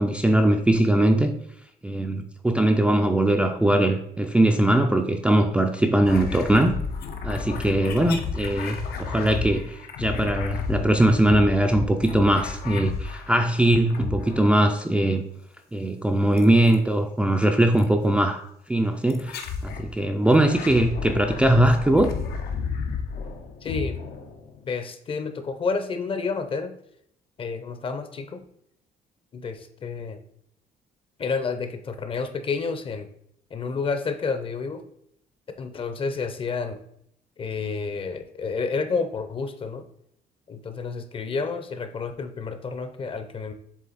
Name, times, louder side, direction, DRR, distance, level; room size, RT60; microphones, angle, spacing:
voice 1, 0.0-1.3 1.8-6.7 7.2-15.2 15.7-18.4 18.7-22.1, right 1 dB, 5° right, 4 dB, 0.4 m, -21 dB
sound 1, 6.1-13.5 13.9-14.7 16.4-16.8 17.8-17.9 19.1-19.9 20.3-24.7, left 5 dB, 80° left, 0.8 m, -32 dB
voice 2, 23.6-24.0 24.6-26.7 27.4-28.4 29.3-30.2 31.2-33.1 33.5-34.8 35.6-36.8 37.4-39.8 40.5-43.5, left 4 dB, 35° left, 8 dB, 0.7 m, -30 dB
7.4 x 3.4 x 4.0 m, 0.72 s
cardioid pair, 145°, 16 cm